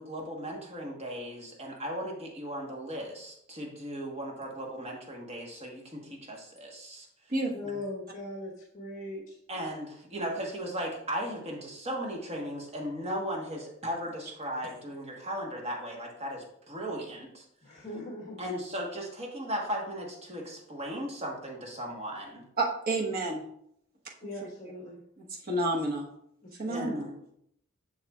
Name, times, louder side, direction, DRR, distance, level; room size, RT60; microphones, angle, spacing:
voice 1, 0.0-7.1 9.5-17.4 18.4-22.4 26.7-27.0, equal, 30° right, 0 dB, 1.3 m, -37 dB
voice 2, 7.5-9.4 17.6-18.4 24.2-25.0 26.4-26.8, left 2 dB, 40° left, -4 dB, 1.3 m, -40 dB
voice 3, 22.6-23.4 25.2-26.1 26.6-27.4, right 2 dB, 45° right, -2 dB, 1.2 m, -30 dB
7.0 x 6.7 x 2.4 m, 0.73 s
head